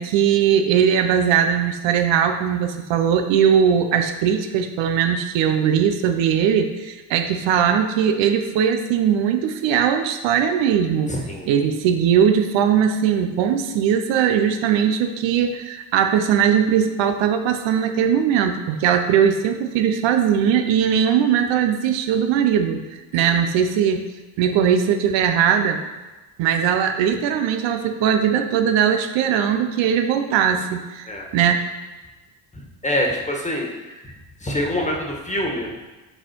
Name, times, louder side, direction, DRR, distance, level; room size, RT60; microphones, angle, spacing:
voice 1, 0.0-11.1 11.5-24.1 24.4-25.8 26.4-31.1 31.3-31.7, right 8 dB, 80° right, 6 dB, 0.7 m, -19 dB
voice 2, 11.1-11.5 23.2-23.3 31.1-31.3 32.5-34.1 34.4-35.8, left 1 dB, 15° left, 0 dB, 1.5 m, -26 dB
7.8 x 4.3 x 4.5 m, 1.2 s
supercardioid pair, 80°, 44 cm